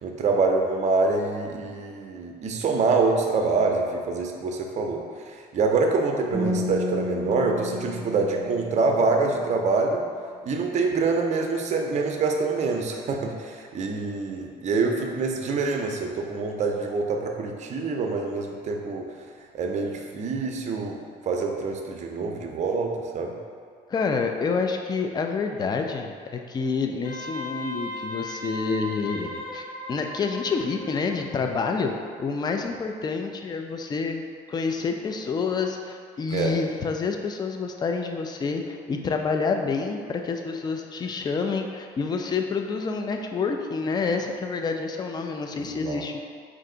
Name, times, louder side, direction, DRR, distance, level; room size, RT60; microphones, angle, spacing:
voice 1, 0.0-10.0 10.4-19.1 19.5-21.0 21.3-23.3 36.3-36.6 45.6-46.0, right 4 dB, 45° right, 2 dB, 0.5 m, -25 dB
sound 1, 6.3-9.5, left 1 dB, 75° left, 1.3 m, -32 dB
voice 2, 23.9-31.9 32.2-34.2 34.5-46.2, left 4 dB, 25° left, 4 dB, 0.3 m, -28 dB
Wind instrument woodwind instrument, 27.0-31.3, left 2 dB, 10° left, 0.9 m, -37 dB
4.5 x 2.5 x 3.8 m, 2.1 s
cardioid pair, 110°, 17 cm